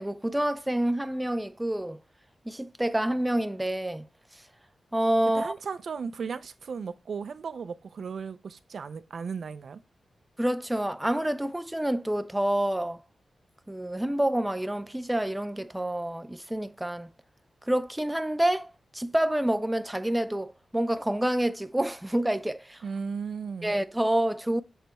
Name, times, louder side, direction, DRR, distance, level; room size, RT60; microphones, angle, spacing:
voice 1, 0.0-2.0 2.5-4.1 4.9-5.5 10.4-13.0 13.7-17.1 17.7-22.8 23.6-24.6, right 1 dB, 10° right, 0.3 m, -28 dB
voice 2, 5.3-9.8 22.8-23.7, right 5 dB, 70° right, 0.5 m, -36 dB
7.3 x 3.4 x 4.1 m
wide cardioid pair, 115°, 0 cm